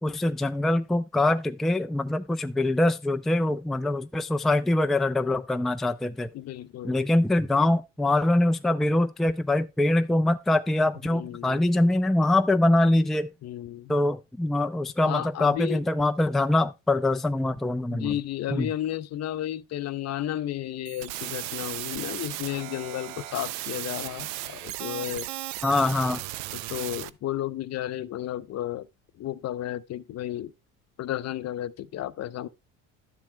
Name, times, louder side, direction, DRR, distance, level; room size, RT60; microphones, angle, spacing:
voice 1, 0.0-6.3 6.8-13.3 13.9-18.2 18.5-18.7 25.6-26.2, left 2 dB, ahead, 0.5 m, -24 dB
voice 2, 6.3-7.0 11.0-11.6 13.4-13.9 15.0-15.8 17.9-25.3 26.5-28.9 29.2-30.5 31.0-32.5, left 12 dB, 45° left, 0.7 m, -33 dB
sound 1, 20.9-27.1, right 15 dB, 80° right, 0.6 m, -36 dB
12.0 x 7.3 x 2.2 m
supercardioid pair, 85°, 35 cm